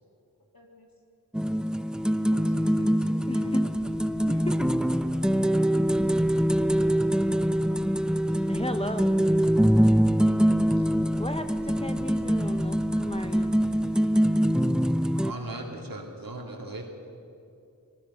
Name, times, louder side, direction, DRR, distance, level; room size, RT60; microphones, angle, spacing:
voice 1, 0.5-0.9 2.3-3.7 7.2-8.9 12.5-12.7 14.9-15.1 15.4-16.3, left 2 dB, 80° left, 0 dB, 3.4 m, -49 dB
sound 1, 1.3-15.3, equal, ahead, 0.6 m, -24 dB
voice 2, 3.3-3.6 4.3-4.4 8.5-9.3 11.2-13.5, left 1 dB, 15° left, 6 dB, 0.9 m, -35 dB
sound 2, 3.7-13.9, right 3 dB, 55° right, 1.8 m, -48 dB
voice 3, 15.1-16.9, right 2 dB, 70° right, 1 dB, 3.0 m, -38 dB
24.5 x 19.5 x 5.8 m, 2.6 s
wide cardioid pair, 60°, 35 cm